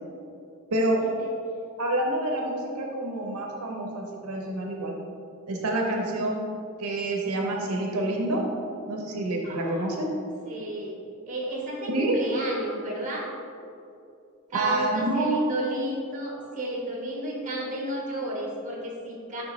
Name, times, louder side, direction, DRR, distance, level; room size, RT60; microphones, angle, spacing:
voice 1, 0.7-1.0 1.8-4.9 5.5-6.4 6.8-8.5 8.8-10.1 11.9-12.2 14.5-15.4, right 1 dB, 85° right, 1 dB, 0.7 m, -27 dB
voice 2, 9.4-10.0 10.5-11.0 11.3-13.3 14.5-19.4, right 1 dB, 35° right, -2 dB, 1.1 m, -32 dB
9.5 x 3.3 x 3.1 m, 2.6 s
head